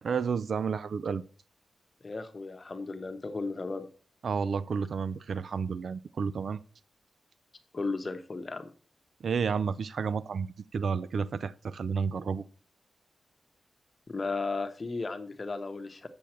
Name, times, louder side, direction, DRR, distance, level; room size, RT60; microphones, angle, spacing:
voice 1, 0.0-1.2 4.2-6.6 9.2-12.4, right 6 dB, 70° right, 0.5 m, -31 dB
voice 2, 2.0-3.9 7.7-8.7 14.1-16.1, left 3 dB, 35° left, 1.1 m, -35 dB
8.3 x 7.1 x 4.4 m
wide cardioid pair, 90°, 0 cm